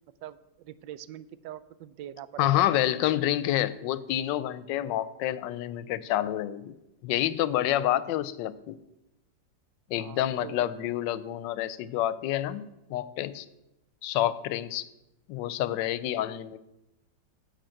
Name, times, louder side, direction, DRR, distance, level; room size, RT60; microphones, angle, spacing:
voice 1, 0.2-3.0 7.7-7.8 10.0-10.7, right 11 dB, 85° right, 16 dB, 1.3 m, -43 dB
voice 2, 2.4-6.7 7.0-8.8 9.9-13.5 14.0-14.9 15.3-16.6, left 13 dB, 85° left, 16 dB, 1.3 m, -28 dB
10.0 x 5.5 x 7.6 m, 0.93 s
omnidirectional pair, 1.9 m